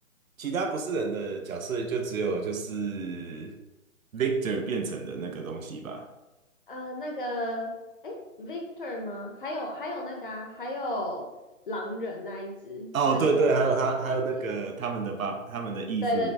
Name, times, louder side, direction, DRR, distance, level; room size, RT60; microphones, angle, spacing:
voice 1, 0.4-3.5 4.1-6.1 12.9-16.3, right 4 dB, 75° right, 4 dB, 0.8 m, -28 dB
voice 2, 6.7-7.7 8.0-11.2 11.7-13.5 14.0-14.2 16.0-16.3, left 1 dB, 40° left, 0 dB, 0.9 m, -34 dB
5.7 x 2.6 x 3.5 m, 1.0 s
hypercardioid pair, 170°, 41 cm